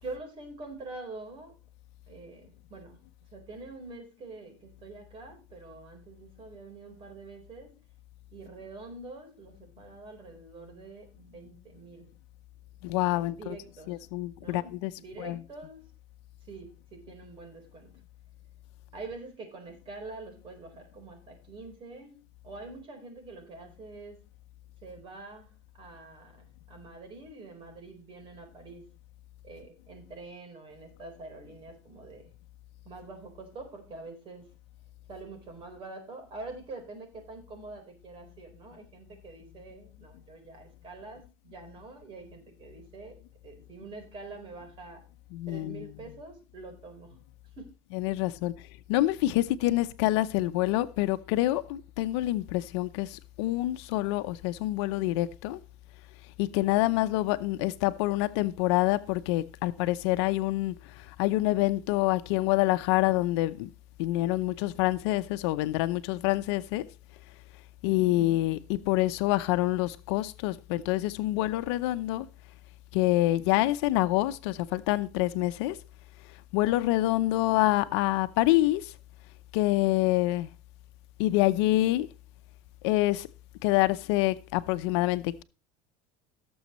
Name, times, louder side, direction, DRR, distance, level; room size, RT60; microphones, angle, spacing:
voice 1, 0.0-1.5 2.1-3.0 3.3-7.7 8.3-12.1 13.1-14.0 14.4-14.7 15.0-15.8 16.4-17.9 18.9-22.1 22.4-24.2 24.8-28.9 29.4-32.2 32.8-34.5 35.1-45.0 45.5-47.2 47.6-47.7 67.8-68.2, right 3 dB, 35° right, 4.3 m, -45 dB
voice 2, 12.8-13.6 13.9-14.9 15.2-15.4 45.3-46.1 47.9-48.5 48.9-55.6 56.4-60.7 61.2-63.7 64.0-66.8 67.8-72.3 72.9-75.8 76.5-78.8 79.5-80.5 81.2-82.1 82.8-83.3 83.6-85.4, left 17 dB, 80° left, 0.8 m, -26 dB
17.5 x 7.1 x 3.1 m
supercardioid pair, 135°, 14 cm